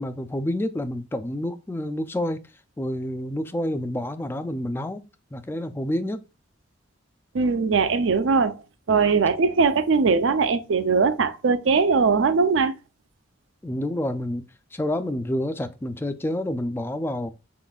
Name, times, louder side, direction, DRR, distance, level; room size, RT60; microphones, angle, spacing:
voice 1, 0.0-2.4 2.8-5.0 5.3-6.2 13.6-14.4 14.7-17.3, left 1 dB, 10° left, 0.3 m, -28 dB
voice 2, 7.3-12.7, right 4 dB, 85° right, 0.5 m, -21 dB
4.4 x 3.8 x 2.3 m
head